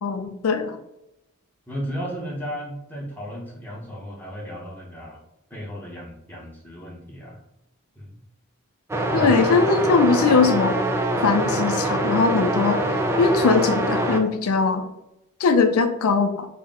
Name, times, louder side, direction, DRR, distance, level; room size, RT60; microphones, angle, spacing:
voice 1, 0.0-0.8 9.1-10.8 11.2-12.8 13.2-14.8 15.4-16.5, left 4 dB, 85° left, 7 dB, 0.4 m, -20 dB
voice 2, 1.7-5.2 5.5-7.4 8.0-8.2 9.1-9.5, equal, 10° left, -4 dB, 0.9 m, -34 dB
sound 1, 8.9-14.2, right 1 dB, 10° right, 0.3 m, -24 dB
4.2 x 2.1 x 3.6 m, 0.86 s
head